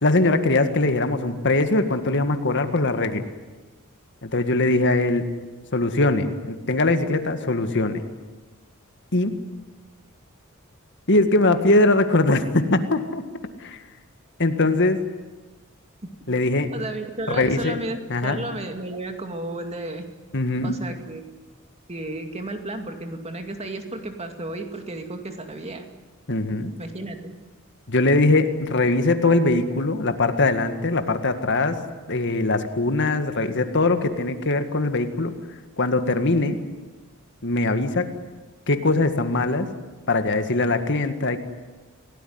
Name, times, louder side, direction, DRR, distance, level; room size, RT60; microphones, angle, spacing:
voice 1, 0.0-3.3 4.2-5.3 5.7-8.0 9.1-9.4 11.1-13.2 13.6-13.8 14.4-15.0 16.3-16.7 17.3-17.8 18.1-18.4 20.3-20.8 26.3-26.7 27.9-31.8 32.1-35.3 35.8-36.6 37.4-38.1 38.7-39.7 40.1-41.4, left 2 dB, 55° left, 8 dB, 1.9 m, -21 dB
voice 2, 16.7-20.0 20.6-21.2 21.9-25.8 26.8-27.3, right 2 dB, 30° right, 5 dB, 2.4 m, -33 dB
28.0 x 17.5 x 9.5 m, 1.2 s
head